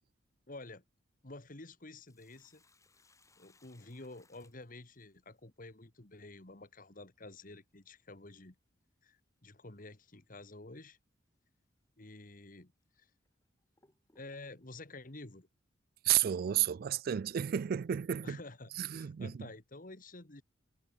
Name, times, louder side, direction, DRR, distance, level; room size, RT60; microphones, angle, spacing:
voice 1, 0.5-0.8 1.2-2.6 3.4-8.5 9.0-11.0 12.0-13.1 14.2-15.5 18.2-20.4, left 2 dB, 45° left, 2.0 m, -50 dB
Sink (filling or washing), 1.8-5.4 7.8-7.9 9.7-10.0 10.5-10.6 11.3-11.5 12.2-12.3 12.9-14.8, left 3 dB, 15° left, 3.3 m, -69 dB
voice 2, 16.0-18.4 18.8-19.5, right 10 dB, 50° right, 0.3 m, -32 dB
head